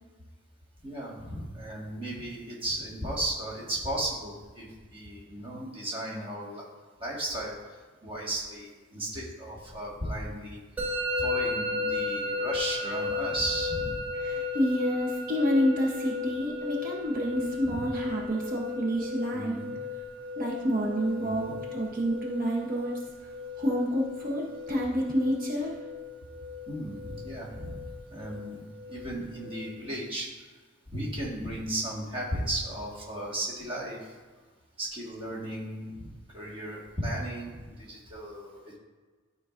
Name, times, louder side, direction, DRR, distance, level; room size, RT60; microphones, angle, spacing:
voice 1, 0.8-6.6 7.0-7.5 8.0-10.6 11.2-14.0 17.6-17.8 19.3-19.7 21.2-21.5 26.7-27.8 28.1-28.6 28.9-30.3 30.9-34.1 34.8-38.8, right 1 dB, 25° right, -4 dB, 1.5 m, -35 dB
Musical instrument, 10.8-29.7, left 3 dB, 5° right, 0.7 m, -35 dB
voice 2, 14.2-19.6 20.4-23.0 23.6-25.7, equal, 40° right, -2 dB, 0.8 m, -28 dB
12.0 x 4.6 x 2.5 m, 1.4 s
head